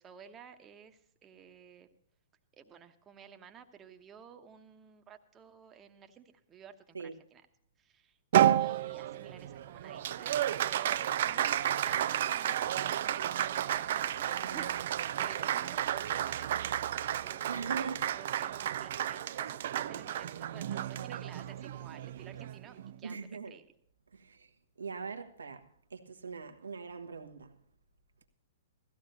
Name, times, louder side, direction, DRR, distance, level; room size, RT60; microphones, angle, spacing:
voice 1, 0.0-1.9 2.5-7.4 7.8-23.2 23.5-23.6, right 7 dB, 20° right, 1.1 m, -53 dB
Applause, 8.3-23.0, right 11 dB, 55° right, 0.4 m, -32 dB
voice 2, 17.5-18.0 23.0-23.5 24.1-24.5 24.8-27.5, right 5 dB, 75° right, 1.2 m, -41 dB
17.0 x 14.0 x 2.7 m
figure-of-eight pair, 110°, 0 cm